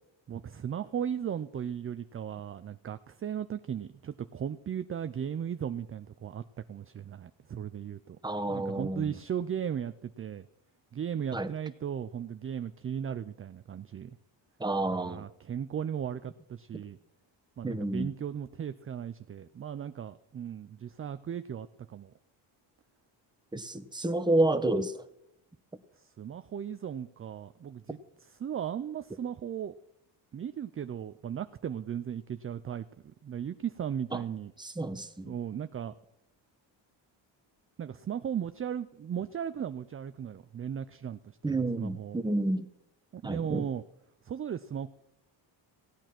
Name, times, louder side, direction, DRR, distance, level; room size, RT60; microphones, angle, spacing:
voice 1, 0.3-6.4 6.7-8.2 8.5-10.5 10.9-14.2 14.9-17.0 17.6-22.1 26.0-28.0 28.4-29.8 30.3-32.9 33.2-34.5 35.3-35.9 37.8-42.2 43.1-43.8 44.2-44.9, right 8 dB, 30° right, 0.4 m, -36 dB
voice 2, 8.2-9.2 11.3-11.5 14.6-15.3 17.6-18.1 23.5-25.0 34.1-34.2 34.6-35.3 41.4-42.7 43.2-43.7, right 2 dB, 10° right, 0.9 m, -30 dB
16.0 x 9.0 x 6.0 m
cardioid pair, 105°, 46 cm